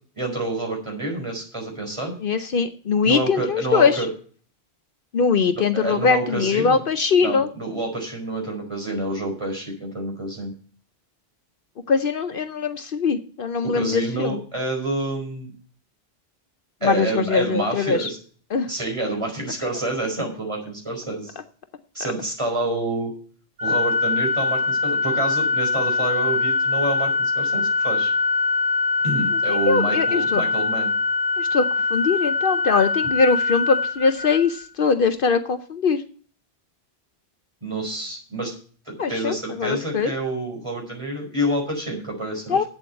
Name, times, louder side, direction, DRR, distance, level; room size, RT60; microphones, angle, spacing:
voice 1, 0.2-2.1 3.0-4.1 5.7-6.8 7.2-10.5 13.6-15.5 16.8-18.2 18.7-21.3 21.9-23.1 23.6-28.1 29.0-30.9 37.6-38.5 38.9-42.7, right 2 dB, 30° right, 0 dB, 4.8 m, -28 dB
voice 2, 2.2-4.0 5.1-7.5 11.9-14.4 16.8-18.1 18.5-18.7 29.5-30.4 31.4-36.0 39.0-40.1 42.5-42.6, left 5 dB, 60° left, 10 dB, 0.9 m, -21 dB
Organ, 23.6-34.6, left 3 dB, 80° right, 2.9 m, -23 dB
8.5 x 7.6 x 7.6 m, 0.43 s
omnidirectional pair, 1.0 m